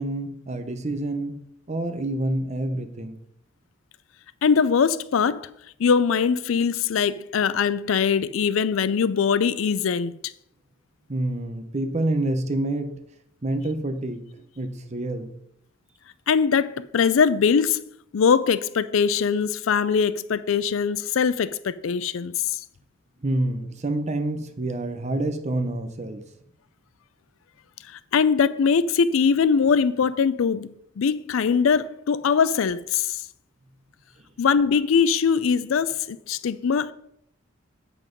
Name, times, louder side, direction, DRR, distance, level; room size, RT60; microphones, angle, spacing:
voice 1, 0.0-1.4 1.7-3.2 11.1-13.0 13.4-14.2 14.6-15.3 23.2-26.2, right 1 dB, 35° right, 0.8 m, -27 dB
voice 2, 4.4-5.5 5.8-10.2 16.3-17.8 18.1-22.3 28.1-30.7 31.0-33.2 34.4-36.9, left 6 dB, 75° left, 0.4 m, -21 dB
7.4 x 6.0 x 5.2 m
head